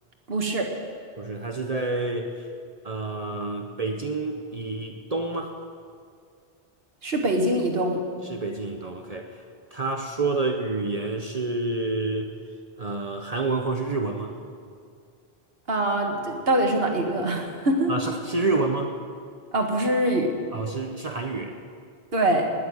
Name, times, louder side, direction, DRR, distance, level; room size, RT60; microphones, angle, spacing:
voice 1, 0.3-0.7 7.0-8.0 15.7-17.9 19.5-20.3 22.1-22.5, right 1 dB, 70° right, 2 dB, 2.0 m, -23 dB
voice 2, 1.2-2.5 2.8-5.6 8.2-9.4 9.7-12.3 12.8-14.3 17.9-18.9 20.5-21.6, right 3 dB, 40° right, 3 dB, 0.9 m, -28 dB
20.0 x 6.9 x 9.7 m, 2.2 s
omnidirectional pair, 1.0 m